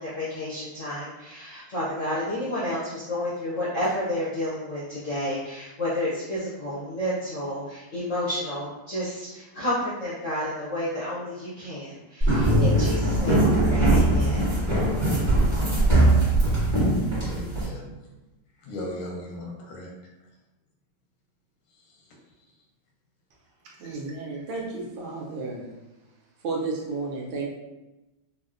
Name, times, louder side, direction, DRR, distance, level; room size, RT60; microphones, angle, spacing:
voice 1, 0.0-14.5, left 1 dB, 70° left, -10 dB, 0.7 m, -31 dB
sound 1, 12.2-17.6, right 1 dB, 20° right, 0.8 m, -21 dB
voice 2, 17.2-17.9 18.6-19.9 21.8-22.0, left 1 dB, 90° left, -2 dB, 1.7 m, -37 dB
voice 3, 23.8-25.7 26.4-27.5, right 3 dB, 75° right, -2 dB, 1.3 m, -32 dB
4.0 x 2.1 x 2.4 m, 1.0 s
omnidirectional pair, 2.3 m